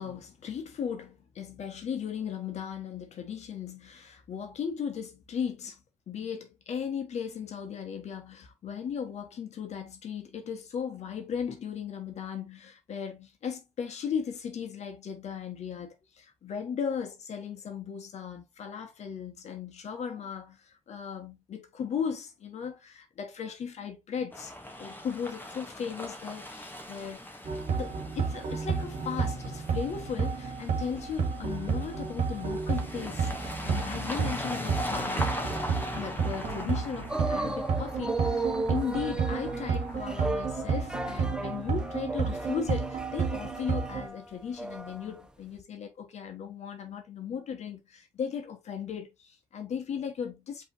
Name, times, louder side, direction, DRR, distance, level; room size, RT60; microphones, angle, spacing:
voice 1, 0.0-5.8 6.1-24.5 24.8-27.4 27.7-35.4 35.9-50.6, left 7 dB, 65° left, 1.4 m, -37 dB
sound 1, 24.3-41.9, left 1 dB, 15° left, 1.3 m, -40 dB
sound 2, 27.4-44.1, right 5 dB, 65° right, 1.5 m, -31 dB
sound 3, 37.1-45.2 45.6-45.7, right 2 dB, 5° right, 0.7 m, -35 dB
5.4 x 3.5 x 2.7 m
cardioid pair, 75°, 12 cm